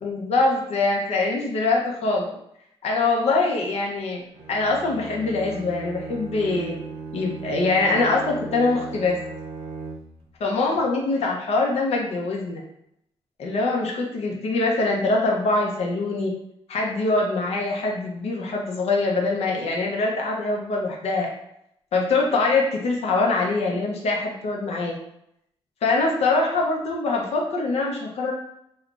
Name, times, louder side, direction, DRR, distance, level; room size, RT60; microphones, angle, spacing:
voice 1, 0.0-2.4 2.8-4.2 4.5-6.7 7.1-9.2 10.4-12.6 13.4-16.3 16.7-21.3 21.9-25.0 25.8-28.3, left 3 dB, 85° left, -1 dB, 0.6 m, -23 dB
Bowed string instrument, 4.3-10.3, right 4 dB, 65° right, 0.5 m, -37 dB
2.4 x 2.2 x 3.7 m, 0.75 s
wide cardioid pair, 145°, 10 cm